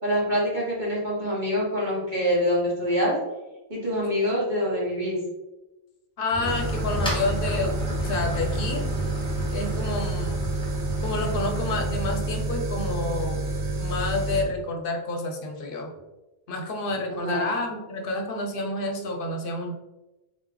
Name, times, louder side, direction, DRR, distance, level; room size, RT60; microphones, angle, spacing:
voice 1, 0.0-3.2 3.7-5.2 17.1-17.5, equal, 45° right, -5 dB, 1.6 m, -25 dB
voice 2, 6.2-8.9 9.5-10.4 11.0-13.5 13.8-15.9 16.5-19.7, left 2 dB, 60° left, 2 dB, 0.9 m, -29 dB
sound 1, 6.3-12.3, left 1 dB, 5° left, 1.1 m, -33 dB
sound 2, 6.5-14.4, right 2 dB, 75° right, 1.0 m, -29 dB
3.9 x 3.2 x 3.7 m, 1.1 s
omnidirectional pair, 1.1 m